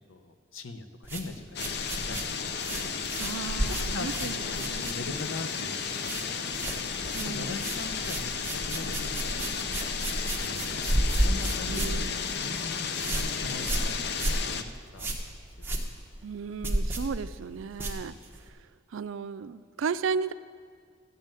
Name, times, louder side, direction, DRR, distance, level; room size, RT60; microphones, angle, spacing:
voice 1, 0.0-2.3 2.8-3.0 3.7-6.8 7.2-10.7 11.2-15.7, left 3 dB, 85° left, 8 dB, 0.9 m, -42 dB
sound 1, 1.0-5.4 5.6-6.3 6.5-18.5, right 1 dB, 10° right, 1.2 m, -32 dB
sound 2, 1.6-14.6, left 6 dB, 55° left, 0.6 m, -33 dB
voice 2, 3.2-4.9 7.1-7.6 11.7-12.2 16.2-20.3, right 5 dB, 80° right, 15 dB, 0.4 m, -35 dB
13.5 x 5.5 x 8.9 m, 2.1 s
head